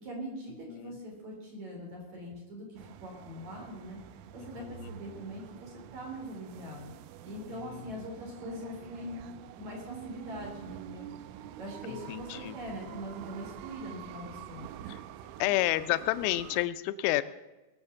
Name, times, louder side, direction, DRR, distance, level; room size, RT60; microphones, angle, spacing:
voice 1, 0.0-4.0 4.3-6.9 7.2-9.2 9.5-11.1 11.6-14.8, equal, 40° right, 0 dB, 4.1 m, -42 dB
sound 1, 2.8-16.7, right 11 dB, 85° right, 3.1 m, -47 dB
voice 2, 4.4-4.9 7.5-7.9 12.1-12.6 14.9-15.0 15.4-17.2, left 16 dB, 85° left, 14 dB, 3.1 m, -30 dB
20.5 x 7.3 x 7.0 m, 1.1 s
omnidirectional pair, 5.6 m